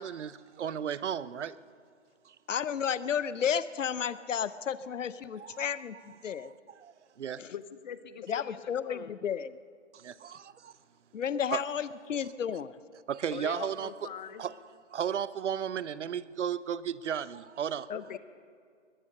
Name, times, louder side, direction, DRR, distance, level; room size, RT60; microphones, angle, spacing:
voice 1, 0.0-1.6 2.3-2.4 5.4-5.6 6.4-6.5 6.8-7.4 9.9-10.7 11.5-11.6 13.1-13.9 14.4-14.5 14.9-17.9, right 8 dB, 70° right, 0.7 m, -34 dB
voice 2, 2.5-6.5 7.4-7.5 8.3-9.6 11.1-12.8 17.9-18.0, left 8 dB, 85° left, 0.7 m, -32 dB
voice 3, 7.5-8.6 8.8-9.1 13.3-14.4 17.9-18.2, left 8 dB, 40° left, 0.8 m, -42 dB
21.5 x 9.6 x 6.6 m
hypercardioid pair, 155°, 37 cm